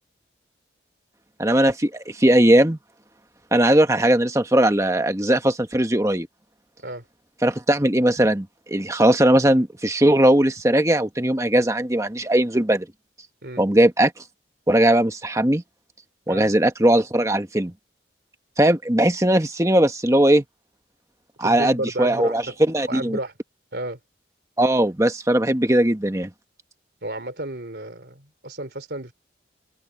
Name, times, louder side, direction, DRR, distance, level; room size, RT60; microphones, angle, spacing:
voice 1, 1.4-2.8 3.5-6.3 7.4-12.9 13.6-14.1 14.7-15.6 16.3-17.7 18.6-20.4 21.4-23.2 24.6-26.3, right 1 dB, 15° right, 1.3 m, -19 dB
voice 2, 21.4-22.5 22.9-23.3 23.7-24.0 27.0-29.1, right 1 dB, 60° right, 3.5 m, -32 dB
head